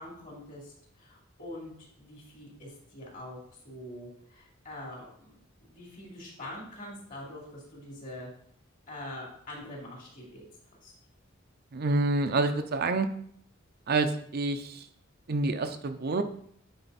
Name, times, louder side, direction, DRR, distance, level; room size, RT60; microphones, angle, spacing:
voice 1, 0.0-3.4 3.6-5.3 5.6-8.3 8.9-10.4 10.8-10.9, left 1 dB, 45° left, -2 dB, 2.9 m, -44 dB
voice 2, 11.7-13.1 13.9-14.8 15.3-16.2, right 3 dB, 50° right, 8 dB, 0.6 m, -27 dB
9.0 x 4.5 x 4.1 m, 0.64 s
head